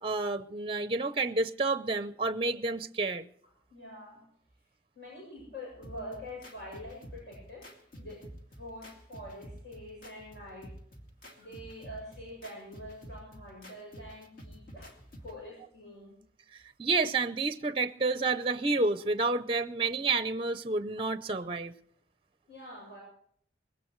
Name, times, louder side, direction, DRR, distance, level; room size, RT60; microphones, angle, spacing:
voice 1, 0.0-3.2 16.8-21.7, right 3 dB, 30° right, 0.6 m, -29 dB
voice 2, 3.7-4.2 4.9-7.7 8.0-8.2 8.5-10.7 11.4-16.2 22.5-23.0, left 1 dB, 65° left, 7.4 m, -45 dB
sound 1, 5.8-15.4, equal, 50° left, 2.4 m, -49 dB
21.0 x 17.5 x 3.1 m
head